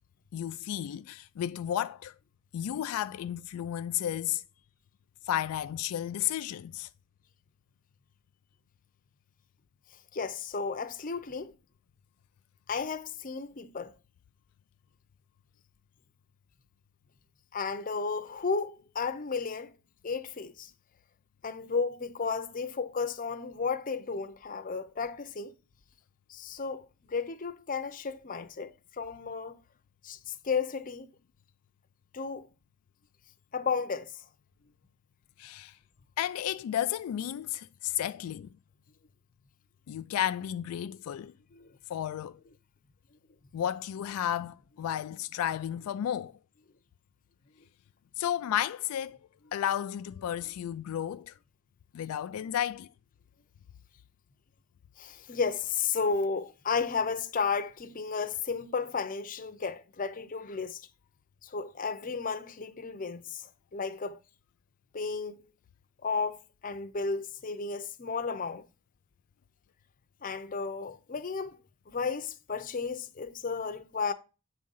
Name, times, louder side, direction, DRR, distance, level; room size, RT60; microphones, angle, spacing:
voice 1, 0.3-2.1 2.5-4.4 5.3-6.9 35.4-35.8 36.2-38.5 39.9-41.3 41.9-42.4 43.5-46.3 48.2-49.2 49.5-51.3 51.9-52.9, left 10 dB, 80° left, 0.3 m, -32 dB
voice 2, 10.1-11.5 12.7-14.0 17.5-19.8 20.0-20.7 21.4-25.5 26.3-29.6 30.0-31.1 32.1-32.5 33.5-34.3 41.5-41.7 55.0-60.9 61.4-64.2 64.9-65.4 66.0-68.6 70.2-74.1, left 5 dB, 40° left, 0.6 m, -33 dB
8.6 x 3.7 x 5.4 m
head